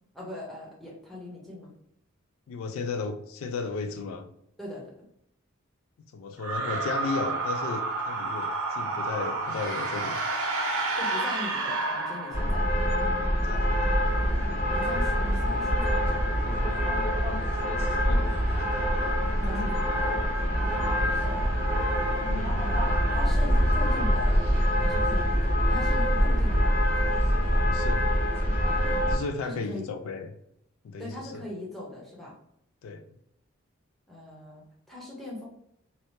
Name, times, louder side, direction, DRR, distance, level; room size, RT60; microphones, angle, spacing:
voice 1, 0.1-1.7 4.6-4.9 11.0-12.6 14.7-16.4 19.4-20.2 20.9-21.7 23.1-24.5 24.8-26.8 29.4-29.9 31.0-32.3 34.1-35.5, left 1 dB, ahead, -4 dB, 0.7 m, -40 dB
voice 2, 2.5-4.3 6.1-10.2 13.3-14.1 18.1-18.3 27.6-28.0 29.1-30.3 30.8-31.4 32.8-33.0, left 4 dB, 70° left, 7 dB, 0.3 m, -34 dB
sound 1, 6.4-12.8, right 3 dB, 85° right, 0.7 m, -30 dB
sound 2, 12.3-29.2, equal, 30° left, 0.8 m, -25 dB
2.7 x 2.0 x 3.1 m, 0.74 s
head